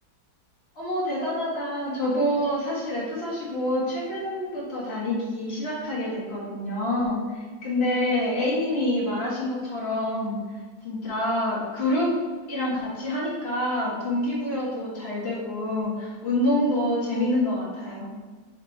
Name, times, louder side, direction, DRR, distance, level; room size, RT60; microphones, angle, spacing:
voice 1, 0.8-10.4 10.8-12.1 12.5-18.1, left 1 dB, 40° left, -6 dB, 2.0 m, -27 dB
5.2 x 4.3 x 4.2 m, 1.4 s
omnidirectional pair, 1.7 m